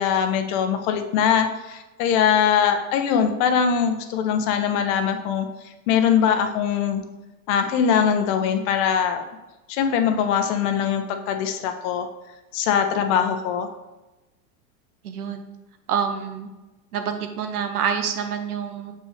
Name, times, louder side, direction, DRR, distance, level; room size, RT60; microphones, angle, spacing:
voice 1, 0.0-5.5 5.9-7.0 7.5-9.2 9.7-12.1 12.5-13.7, left 7 dB, 50° left, 7 dB, 0.9 m, -22 dB
voice 2, 15.0-15.4 15.9-16.5 16.9-18.9, right 7 dB, 85° right, 7 dB, 1.0 m, -27 dB
6.7 x 5.6 x 3.3 m, 1.1 s
hypercardioid pair, 120°, 43 cm